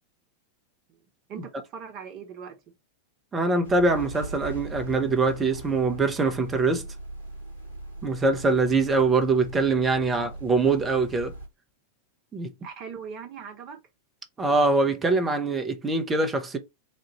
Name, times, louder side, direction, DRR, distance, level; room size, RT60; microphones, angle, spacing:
voice 1, 1.3-2.6 12.6-13.8, right 6 dB, 40° right, 1.3 m, -40 dB
voice 2, 3.3-6.9 8.0-11.3 12.3-12.5 14.4-16.6, right 3 dB, 15° right, 1.0 m, -23 dB
sound 1, 3.6-11.5, right 2 dB, 75° left, 2.3 m, -39 dB
4.3 x 2.6 x 4.2 m
figure-of-eight pair, 90°, 0 cm